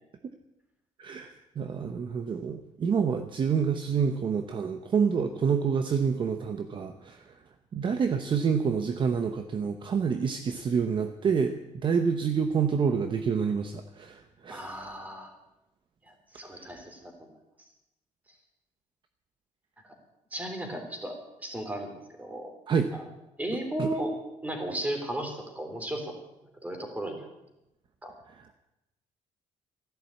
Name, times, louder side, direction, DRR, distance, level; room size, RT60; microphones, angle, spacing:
voice 1, 1.0-7.4 7.7-14.8 16.5-16.7 22.7-22.9 23.8-23.9 28.3-28.5, right 6 dB, 40° right, 7 dB, 1.0 m, -28 dB
voice 2, 14.5-15.3 16.1-17.1 19.8-19.9 20.3-22.5 22.9-23.0 23.4-24.1 24.4-26.1 26.6-27.3 28.0-28.1, right 1 dB, 10° right, 4 dB, 3.5 m, -35 dB
14.0 x 11.5 x 8.4 m, 0.91 s
cardioid pair, 135°, 13 cm